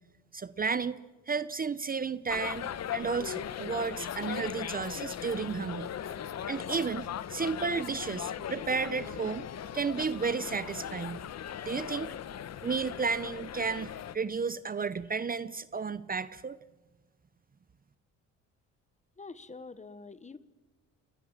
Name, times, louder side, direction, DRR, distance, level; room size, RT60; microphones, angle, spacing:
voice 1, 0.3-1.0 1.3-5.9 6.5-9.5 9.7-11.2 11.7-12.1 12.6-16.6, right 5 dB, 30° right, 16 dB, 0.7 m, -33 dB
sound 1, 2.3-14.2, left 9 dB, 60° left, 1.1 m, -38 dB
voice 2, 19.2-20.4, left 4 dB, 25° left, 15 dB, 1.2 m, -46 dB
29.0 x 20.0 x 7.4 m, 1.2 s
cardioid pair, 90°, 30 cm